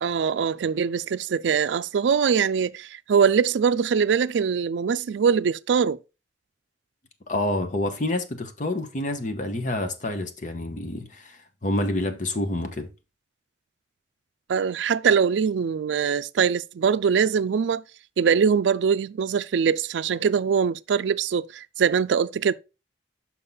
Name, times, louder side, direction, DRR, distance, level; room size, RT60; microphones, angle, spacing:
voice 1, 0.0-6.0 14.5-17.8 18.2-22.5, right 6 dB, 85° right, 0.4 m, -22 dB
voice 2, 7.3-12.9, left 1 dB, 45° left, 0.9 m, -28 dB
5.9 x 5.5 x 3.9 m
head